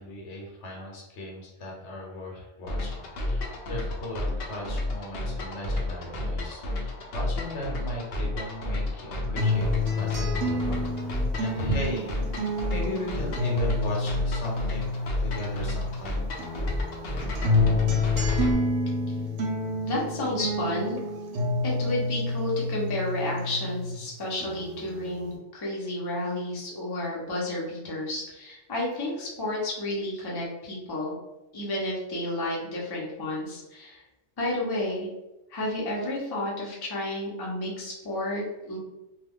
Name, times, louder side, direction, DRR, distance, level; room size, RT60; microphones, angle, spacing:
voice 1, 0.0-9.7 10.0-12.2 12.7-16.2, equal, 75° left, -1 dB, 1.1 m, -36 dB
sound 1, 2.7-18.5, left 1 dB, 60° left, 0.7 m, -31 dB
sound 2, 9.4-16.0 16.4-24.0 24.4-25.4, left 2 dB, 90° right, 0.9 m, -29 dB
voice 2, 19.8-21.0 21.6-31.1 31.5-34.0 34.4-35.1 35.5-38.8, left 1 dB, 25° left, -4 dB, 0.5 m, -31 dB
2.3 x 2.2 x 3.4 m, 0.97 s
omnidirectional pair, 1.2 m